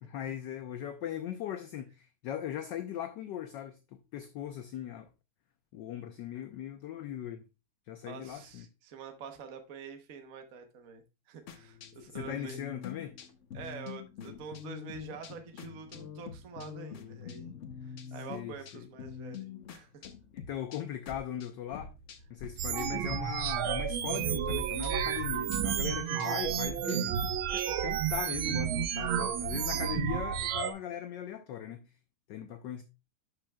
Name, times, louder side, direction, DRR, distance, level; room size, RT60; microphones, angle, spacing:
voice 1, 0.0-5.1 5.7-7.4 7.9-8.6 12.0-13.2 18.1-18.9 20.3-21.9 22.3-27.2 27.5-31.9 32.3-32.8, left 10 dB, 65° left, 1.2 m, -39 dB
voice 2, 8.0-12.6 13.5-17.5 17.8-20.1 29.0-29.3, right 6 dB, 50° right, 1.1 m, -47 dB
sound 1, 11.5-22.5 22.8-23.8 24.1-27.9, left 7 dB, 90° left, 0.6 m, -46 dB
sound 2, 22.6-30.7, right 8 dB, 70° right, 1.5 m, -31 dB
11.5 x 5.6 x 2.3 m
omnidirectional pair, 2.4 m